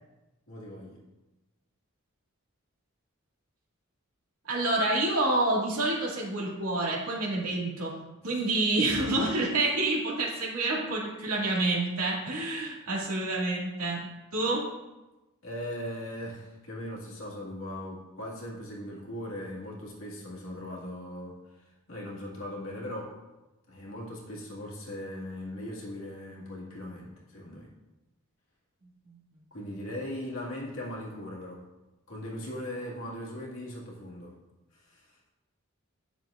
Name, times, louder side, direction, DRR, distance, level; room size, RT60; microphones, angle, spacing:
voice 1, 0.5-1.0 8.2-8.4 15.4-23.2 23.7-27.7 29.5-31.6 32.1-34.3 34.7-35.2, left 1 dB, 70° left, -4 dB, 2.0 m, -39 dB
voice 2, 4.5-8.0 8.2-14.6 29.1-29.2, right 2 dB, 85° right, -4 dB, 2.3 m, -28 dB
10.5 x 6.5 x 2.5 m, 1.1 s
head